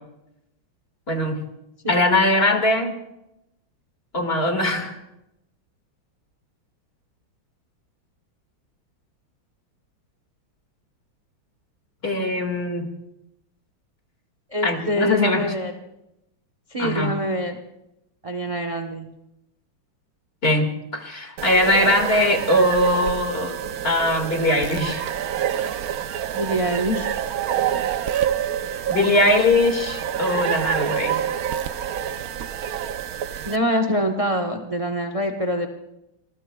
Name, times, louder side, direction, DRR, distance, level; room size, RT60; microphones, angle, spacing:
voice 1, 1.1-1.4 1.9-2.9 4.1-5.0 12.0-12.9 14.6-15.5 16.8-17.1 20.4-23.5 23.8-25.1 28.9-31.2, left 1 dB, 30° left, 4 dB, 2.0 m, -21 dB
voice 2, 14.5-15.7 16.7-17.6 18.2-19.1 26.3-27.1 33.4-35.7, equal, 30° right, 5 dB, 0.6 m, -25 dB
sound 1, 21.4-33.6, right 9 dB, 70° right, 0.9 m, -27 dB
26.0 x 21.0 x 2.3 m, 0.88 s
omnidirectional pair, 2.2 m